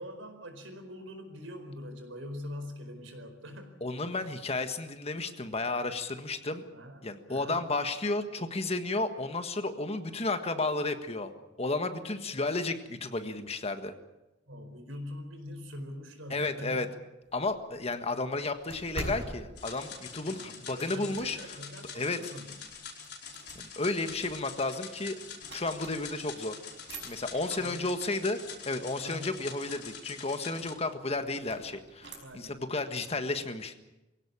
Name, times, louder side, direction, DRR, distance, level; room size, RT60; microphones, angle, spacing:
voice 1, 0.0-3.8 4.1-4.3 6.7-7.6 14.5-16.9 20.3-22.6 27.4-27.8 29.0-29.3 32.2-32.6, left 1 dB, 85° right, 7 dB, 4.6 m, -43 dB
voice 2, 3.8-6.6 7.0-11.3 11.6-13.9 16.3-16.9 17.3-21.4 21.9-22.3 23.6-25.2 25.5-26.6 26.9-28.4 28.7-33.7, left 2 dB, 30° left, 8 dB, 1.6 m, -32 dB
sound 1, 17.2-21.7 22.2-26.3 26.7-32.6, right 1 dB, 65° right, 5.7 m, -46 dB
sound 2, 19.6-30.7, left 6 dB, 60° left, 5.0 m, -45 dB
23.5 x 16.5 x 8.8 m, 1.0 s
head